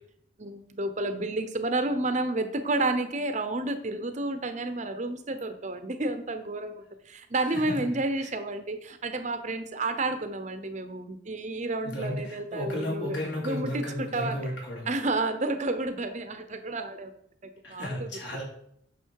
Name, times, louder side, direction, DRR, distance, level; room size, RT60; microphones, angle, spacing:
voice 1, 0.4-6.7 7.1-13.2 13.4-14.5 14.9-17.1 17.4-18.1, right 2 dB, 35° right, 9 dB, 0.8 m, -30 dB
voice 2, 7.4-7.8 8.2-8.3 11.8-14.9 17.6-18.4, left 1 dB, 65° left, -3 dB, 3.8 m, -34 dB
9.3 x 6.0 x 4.7 m, 0.69 s
head